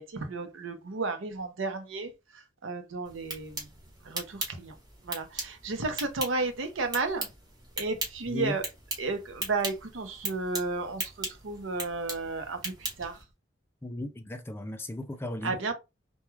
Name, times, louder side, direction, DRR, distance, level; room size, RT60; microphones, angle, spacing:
voice 1, 0.0-3.7 4.0-4.8 5.0-7.3 7.8-8.6 9.0-13.2 15.4-15.7, right 3 dB, 85° right, 0.6 m, -33 dB
sound 1, 3.0-13.2, right 2 dB, 20° right, 1.0 m, -39 dB
voice 2, 13.8-15.5, left 1 dB, 10° left, 0.4 m, -36 dB
2.3 x 2.2 x 3.0 m
head